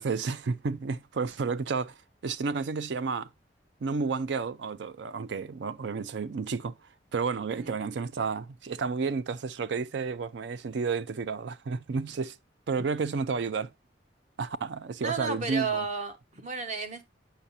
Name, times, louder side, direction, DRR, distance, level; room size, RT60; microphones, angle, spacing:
voice 1, 0.0-1.9 2.2-3.3 3.8-6.8 7.1-12.4 12.7-13.7 14.4-15.8, right 5 dB, 65° right, 0.4 m, -31 dB
voice 2, 15.0-17.0, right 4 dB, 40° right, 1.0 m, -32 dB
8.6 x 5.6 x 2.6 m
head